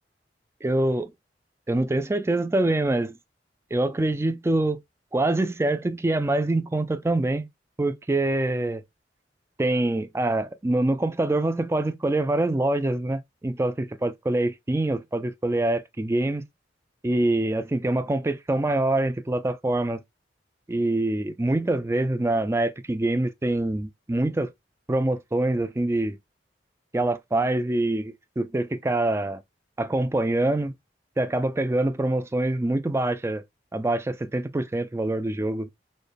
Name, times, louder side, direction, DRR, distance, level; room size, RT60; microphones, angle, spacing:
voice 1, 0.6-1.1 1.7-3.2 3.7-4.8 5.1-7.5 7.8-8.8 9.6-16.4 17.0-20.0 20.7-24.5 24.9-26.2 26.9-29.4 29.8-30.7 31.2-33.4 33.7-35.7, right 2 dB, 15° right, 0.4 m, -25 dB
4.2 x 2.3 x 3.3 m
head